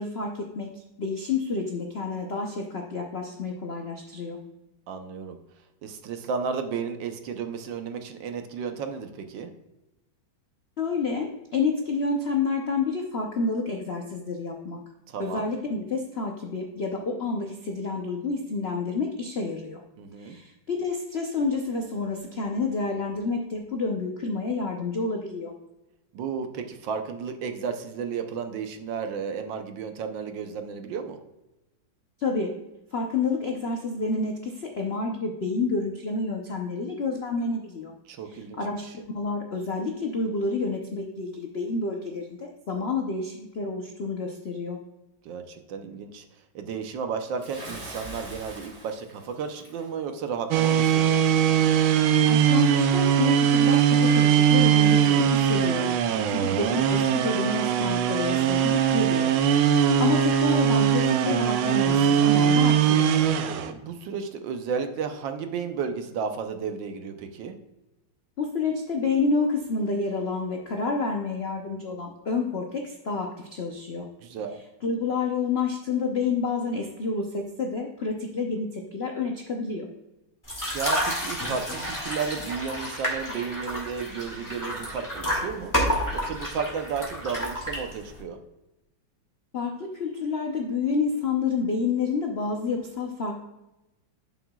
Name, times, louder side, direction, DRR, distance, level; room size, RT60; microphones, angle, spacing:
voice 1, 0.0-4.4 10.8-14.8 15.2-19.8 20.2-25.5 32.2-32.6 32.9-37.9 38.3-44.8 52.3-55.9 56.3-59.3 59.7-63.1 68.4-74.1 74.8-79.9 89.5-93.4, left 4 dB, 75° left, 2 dB, 0.5 m, -29 dB
voice 2, 4.9-5.4 5.8-9.5 15.1-15.4 20.0-20.4 26.1-31.2 38.1-38.9 45.2-46.3 46.5-51.2 63.7-67.6 74.2-74.6 80.7-85.7 86.1-88.4, right 6 dB, 70° right, 7 dB, 1.4 m, -33 dB
Bathtub (filling or washing) / Splash splatter, 47.4-49.9, right 2 dB, 45° right, 2.5 m, -42 dB
sound 1, 50.5-63.7, right 8 dB, 90° right, 1.4 m, -21 dB
sound 2, 80.4-88.2, equal, 10° left, 1.9 m, -30 dB
11.0 x 6.0 x 2.3 m, 0.97 s
omnidirectional pair, 2.2 m